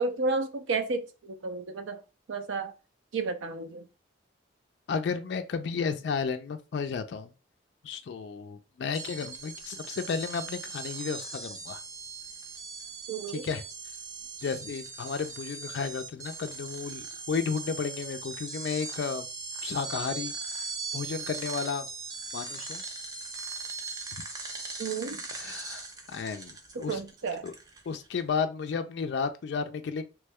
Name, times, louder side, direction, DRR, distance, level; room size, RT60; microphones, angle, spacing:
voice 1, 0.0-2.0 2.3-2.7 3.1-3.9 13.1-13.5 24.8-25.3 26.7-27.5, right 4 dB, 80° right, 0.4 m, -32 dB
voice 2, 4.9-7.3 7.8-11.8 13.3-13.6 14.4-19.3 19.6-21.8 22.3-22.8 25.3-27.0 27.4-27.5 27.9-30.0, left 5 dB, 60° left, 0.3 m, -33 dB
sound 1, 8.9-28.1, right 4 dB, 20° right, 0.4 m, -40 dB
3.0 x 2.2 x 3.4 m
head